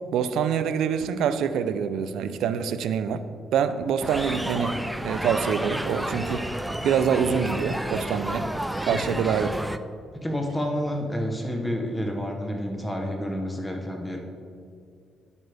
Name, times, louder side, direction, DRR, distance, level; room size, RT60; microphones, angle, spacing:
voice 1, 0.1-3.2 3.5-4.8 5.0-6.5 6.8-8.5 8.8-9.5, right 7 dB, 80° right, 11 dB, 0.5 m, -25 dB
sound 1, 4.0-9.8, right 1 dB, 5° right, 0.4 m, -31 dB
voice 2, 10.1-14.2, equal, 10° left, 3 dB, 1.1 m, -29 dB
10.5 x 8.3 x 3.5 m, 2.3 s
cardioid pair, 90°, 0 cm